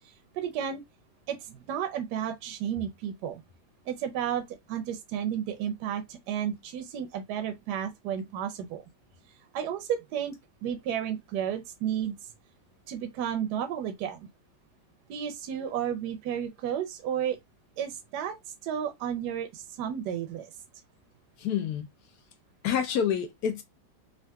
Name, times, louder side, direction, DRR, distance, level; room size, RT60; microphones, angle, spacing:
voice 1, 0.3-0.8 1.3-3.4 3.9-8.8 9.5-10.4 10.6-12.2 12.9-14.3 15.1-17.4 17.8-18.4 18.6-20.5, right 9 dB, 75° right, 1.1 m, -32 dB
voice 2, 21.4-21.9 22.6-23.6, left 8 dB, 70° left, 1.0 m, -28 dB
3.6 x 2.5 x 2.2 m
omnidirectional pair, 1.8 m